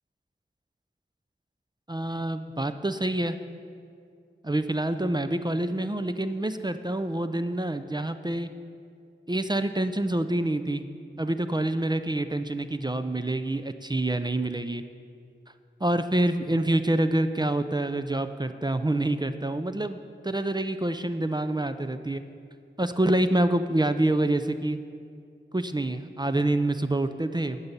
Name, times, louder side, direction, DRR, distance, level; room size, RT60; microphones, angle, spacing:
voice 1, 1.9-3.4 4.4-8.5 9.3-10.9 11.2-14.8 15.8-22.2 22.8-24.8 25.5-27.6, right 1 dB, 20° right, 9 dB, 0.4 m, -27 dB
11.0 x 5.5 x 8.1 m, 2.3 s
wide cardioid pair, 55°, 20 cm